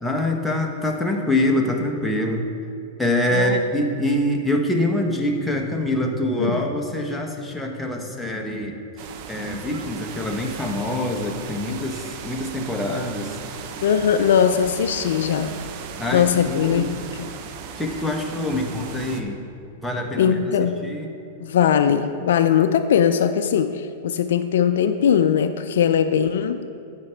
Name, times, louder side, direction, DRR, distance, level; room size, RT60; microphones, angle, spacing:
voice 1, 0.0-2.5 3.0-8.8 9.3-13.4 16.0-16.9 17.8-19.4 19.8-20.4 20.8-21.1, left 1 dB, 5° left, 0 dB, 1.0 m, -25 dB
sound 1, 9.0-19.2, right 6 dB, 50° right, 0.7 m, -36 dB
voice 2, 13.8-15.5 16.1-17.3 20.2-20.8 21.4-26.7, left 8 dB, 75° left, 7 dB, 0.3 m, -20 dB
10.5 x 7.2 x 3.3 m, 2.6 s
hypercardioid pair, 120°, 0 cm